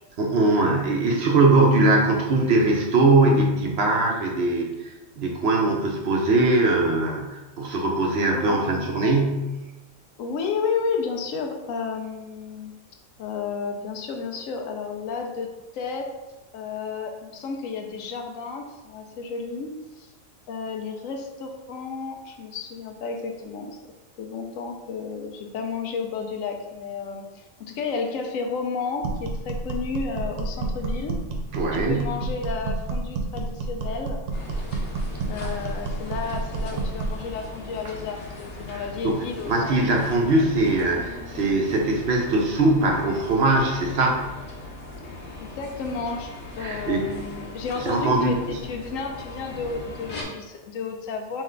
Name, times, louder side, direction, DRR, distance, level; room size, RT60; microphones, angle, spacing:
voice 1, 0.2-9.5 31.5-32.1 38.7-44.2 46.6-47.1 47.8-48.6, right 2 dB, 60° right, 0 dB, 0.8 m, -21 dB
voice 2, 8.3-9.1 10.2-12.8 13.2-16.1 16.5-20.1 20.5-23.8 24.2-31.2 31.6-34.2 35.3-39.8 45.6-51.4, left 5 dB, 85° left, 3 dB, 1.0 m, -32 dB
sound 1, 29.0-37.2, right 3 dB, 90° right, 1.0 m, -30 dB
sound 2, 34.3-50.2, left 2 dB, 65° left, 1.0 m, -39 dB
3.2 x 3.1 x 3.7 m, 1.1 s
omnidirectional pair, 1.3 m